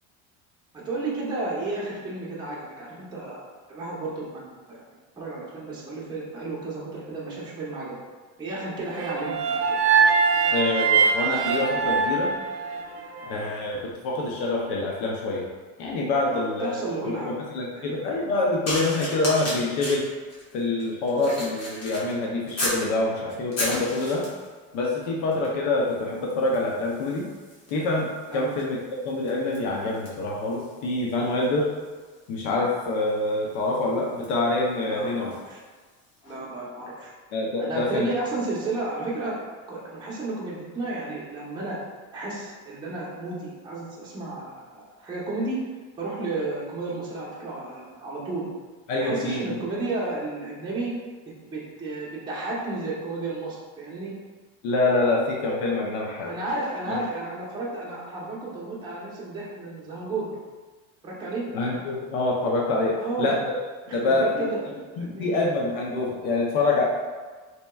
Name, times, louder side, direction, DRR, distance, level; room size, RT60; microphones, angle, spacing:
voice 1, 0.7-3.4 3.7-7.9 8.4-9.8 16.3-17.3 17.7-18.0 28.3-28.5 34.9-35.6 36.2-37.1 37.6-39.4 39.7-41.8 42.1-45.6 46.0-48.5 49.0-50.9 51.4-54.1 56.2-60.3 61.0-61.4 63.0-63.3 63.9-64.6 65.0-65.3, right 2 dB, 10° right, -7 dB, 0.7 m, -32 dB
sound 1, 9.0-13.2, right 5 dB, 65° right, 0.5 m, -22 dB
voice 2, 10.5-12.3 13.3-13.8 14.0-15.4 15.8-16.8 17.2-20.0 20.5-24.2 24.7-27.3 27.7-28.1 28.3-28.8 29.0-31.7 32.3-35.3 37.3-38.1 48.9-49.4 54.6-56.3 56.9-57.0 61.5-62.9 63.2-63.4 63.9-64.5 65.0-66.8, left 2 dB, 70° left, -2 dB, 0.7 m, -26 dB
sound 2, 18.6-22.9 23.3-24.5 25.3-25.6 25.8-35.5 36.2-36.4, left 1 dB, 45° left, 1.2 m, -36 dB
4.2 x 2.9 x 2.3 m, 1.4 s
cardioid pair, 140°, 37 cm